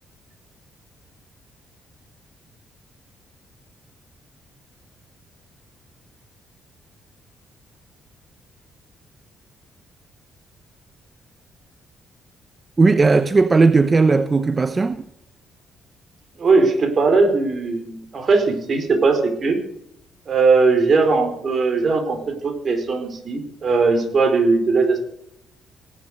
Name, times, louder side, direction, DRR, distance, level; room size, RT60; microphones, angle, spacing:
voice 1, 12.8-15.0, right 3 dB, 25° right, 0.9 m, -16 dB
voice 2, 16.4-19.6 20.3-25.0, right 4 dB, 45° right, 4.7 m, -19 dB
18.0 x 11.0 x 6.7 m
cardioid pair, 90°, 0 cm